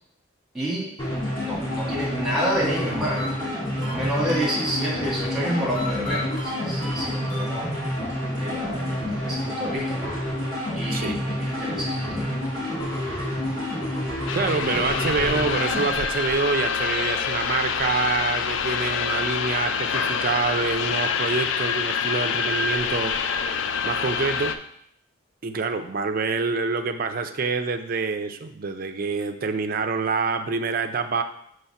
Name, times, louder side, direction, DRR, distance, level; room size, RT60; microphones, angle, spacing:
voice 1, 0.5-0.9 1.4-7.7 8.3-10.1 10.7-12.3, equal, ahead, -6 dB, 1.8 m, -29 dB
sound 1, 1.0-15.9, left 1 dB, 20° left, 2.0 m, -28 dB
sound 2, 3.2-5.0 5.7-8.0, left 3 dB, 40° left, 2.0 m, -38 dB
sound 3, 14.3-24.6, left 6 dB, 65° left, 0.4 m, -26 dB
voice 2, 14.3-23.2 23.8-24.5 25.4-31.2, right 4 dB, 45° right, 8 dB, 0.4 m, -26 dB
5.6 x 3.2 x 5.7 m, 0.71 s
head